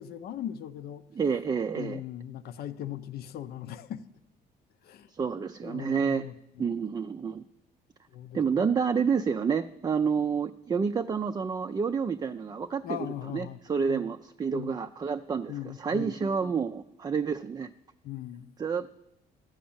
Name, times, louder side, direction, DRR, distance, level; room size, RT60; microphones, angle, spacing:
voice 1, 0.0-1.0 1.7-4.0 4.8-5.1 5.6-6.7 8.1-8.7 12.8-13.6 13.9-14.0 14.5-14.7 15.5-16.1 18.0-18.5, left 11 dB, 65° left, 12 dB, 0.8 m, -39 dB
voice 2, 1.1-2.0 5.1-6.3 6.6-7.4 8.3-13.0 13.3-17.7 18.6-18.9, right 6 dB, 25° right, 8 dB, 0.4 m, -29 dB
13.5 x 5.1 x 8.7 m, 0.84 s
cardioid pair, 110°, 17 cm